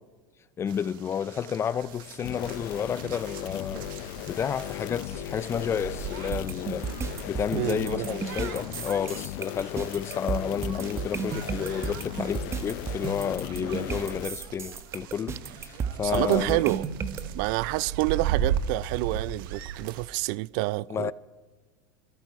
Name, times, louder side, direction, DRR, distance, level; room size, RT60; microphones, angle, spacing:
voice 1, 0.6-16.6 20.9-21.1, left 8 dB, 25° left, 0.4 m, -31 dB
sound 1, 0.7-20.1, right 9 dB, 85° right, 1.1 m, -38 dB
sound 2, 2.2-14.3, left 16 dB, 70° left, 0.6 m, -37 dB
sound 3, 6.3-17.2, right 6 dB, 25° right, 1.1 m, -34 dB
voice 2, 7.6-8.1 16.0-16.8 17.3-21.1, right 20 dB, 65° right, 0.4 m, -28 dB
22.0 x 13.5 x 4.7 m
supercardioid pair, 135°, 11 cm